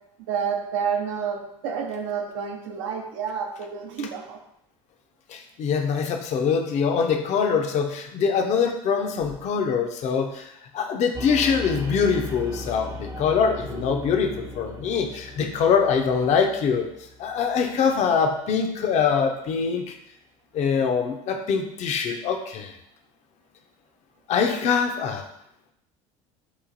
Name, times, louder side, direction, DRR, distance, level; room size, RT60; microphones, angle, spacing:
voice 1, 0.3-4.4, right 6 dB, 85° right, 2 dB, 0.6 m, -29 dB
voice 2, 5.3-16.9 17.2-19.9 20.5-22.7 24.3-25.2, left 6 dB, 50° left, 5 dB, 0.5 m, -23 dB
sound 1, 11.1-17.9, left 1 dB, 20° right, 0.4 m, -38 dB
3.0 x 2.5 x 3.8 m, 0.75 s
supercardioid pair, 90°, 16 cm